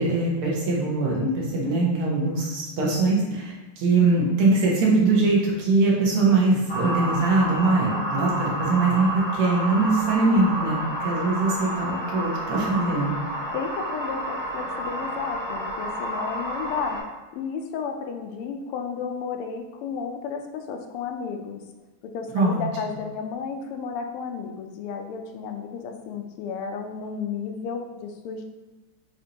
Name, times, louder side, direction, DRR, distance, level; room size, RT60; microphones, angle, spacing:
voice 1, 0.0-13.2 22.3-22.6, right 3 dB, 80° right, -3 dB, 2.0 m, -22 dB
sound 1, 6.7-17.0, right 1 dB, 65° left, 2.1 m, -30 dB
voice 2, 7.9-8.4 13.5-21.6 22.0-28.4, left 6 dB, 85° left, 4 dB, 1.5 m, -33 dB
6.6 x 2.7 x 2.8 m, 1.2 s
omnidirectional pair, 2.4 m